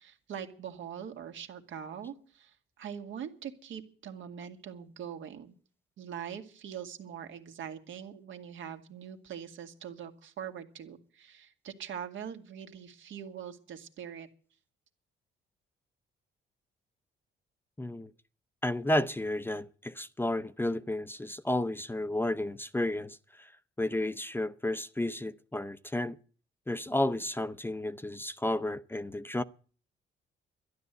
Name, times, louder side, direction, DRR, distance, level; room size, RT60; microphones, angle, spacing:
voice 1, 0.0-5.5 6.0-14.3, right 8 dB, 75° right, 2.1 m, -43 dB
voice 2, 17.8-18.1 18.6-23.5 23.8-26.2 26.7-29.4, left 1 dB, 10° left, 0.6 m, -32 dB
12.5 x 11.0 x 8.1 m
cardioid pair, 90°, 20 cm